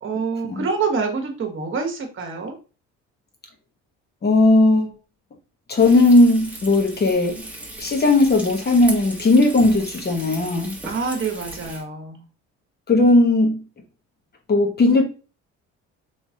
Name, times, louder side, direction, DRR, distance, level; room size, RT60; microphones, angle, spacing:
voice 1, 0.0-2.5 10.9-12.2, right 4 dB, 40° right, 1.2 m, -26 dB
voice 2, 4.2-4.9 5.7-7.4 7.8-10.8 12.9-13.6 14.5-15.0, left 2 dB, 35° left, 1.0 m, -17 dB
Frying (food), 5.8-11.8, right 1 dB, 5° right, 1.1 m, -37 dB
3.3 x 3.0 x 2.7 m
supercardioid pair, 85°, 30 cm